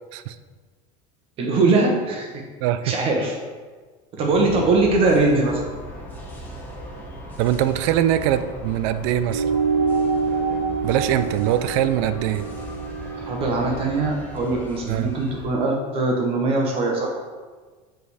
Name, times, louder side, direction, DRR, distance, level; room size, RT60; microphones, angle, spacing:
voice 1, 1.4-2.3 2.8-3.3 4.2-5.6 13.2-17.1, right 3 dB, 30° right, 0 dB, 0.9 m, -21 dB
voice 2, 2.6-2.9 7.4-9.5 10.8-12.4 14.9-15.1, right 11 dB, 55° right, 12 dB, 0.4 m, -22 dB
sound 1, 4.3-15.4, equal, 10° left, 0.9 m, -38 dB
sound 2, 9.3-14.1, right 4 dB, 85° right, 1.0 m, -26 dB
7.6 x 3.4 x 4.7 m, 1.4 s
supercardioid pair, 160°, 18 cm